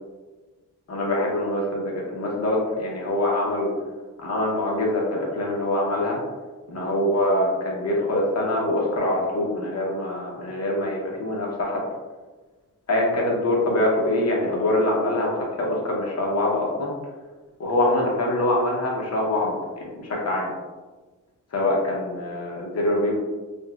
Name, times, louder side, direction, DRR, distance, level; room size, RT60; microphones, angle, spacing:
voice 1, 0.9-3.7 4.2-6.2 6.7-11.8 12.9-16.9 17.6-20.5 21.5-23.2, left 1 dB, 50° left, -3 dB, 0.8 m, -24 dB
3.9 x 2.1 x 2.3 m, 1.3 s
wide cardioid pair, 125°, 34 cm